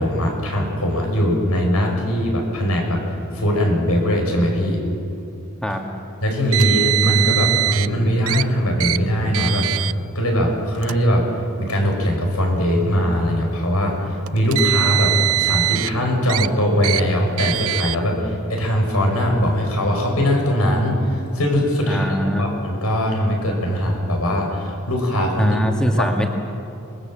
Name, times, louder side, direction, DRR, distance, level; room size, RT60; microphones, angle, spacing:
voice 1, 0.0-4.8 6.2-9.7 10.1-11.2 11.6-22.1 22.4-25.6 26.0-26.1, equal, 80° left, 1 dB, 6.0 m, -20 dB
Car, 6.5-7.9 8.3-8.4 8.8-9.0 9.3-9.9 10.7-10.9 11.9-12.0 14.3-15.9 16.3-16.5 16.8-17.0 17.4-18.0, right 17 dB, 70° right, 0.5 m, -21 dB
voice 2, 21.8-22.5 25.4-26.3, equal, 5° left, 2 dB, 1.9 m, -22 dB
26.5 x 21.0 x 7.6 m, 2.6 s
head